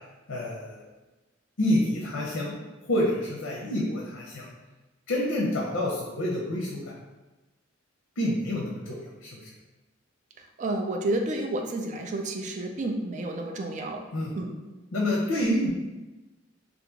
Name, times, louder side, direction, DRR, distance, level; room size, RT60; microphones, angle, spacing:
voice 1, 0.3-0.8 1.6-2.5 2.8-4.5 5.1-6.9 8.2-9.5 14.1-14.3 14.9-15.7, left 1 dB, 85° left, -3 dB, 0.6 m, -28 dB
voice 2, 10.6-14.0 14.4-14.6, right 2 dB, 35° right, 3 dB, 0.4 m, -30 dB
2.9 x 2.5 x 3.6 m, 1.1 s
head